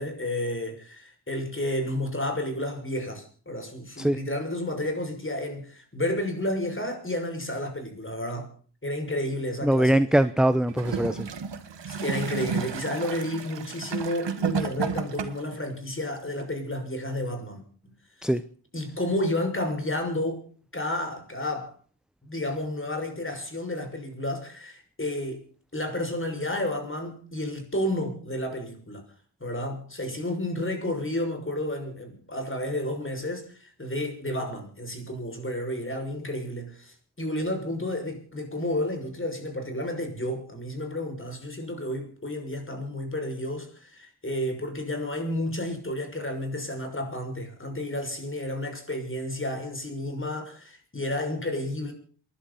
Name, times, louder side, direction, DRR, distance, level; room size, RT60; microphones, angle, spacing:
voice 1, 0.0-8.5 8.8-10.0 11.9-17.6 18.2-18.3 18.7-20.4 20.7-21.7 22.2-25.4 25.7-29.0 29.4-51.9, left 1 dB, 30° left, 6.4 m, -31 dB
voice 2, 9.6-11.3 18.2-18.4, right 1 dB, ahead, 0.7 m, -22 dB
Gurgling / Toilet flush, 10.7-15.6 16.4-16.5, right 6 dB, 80° right, 1.7 m, -32 dB
29.0 x 11.5 x 4.2 m
wide cardioid pair, 70°, 43 cm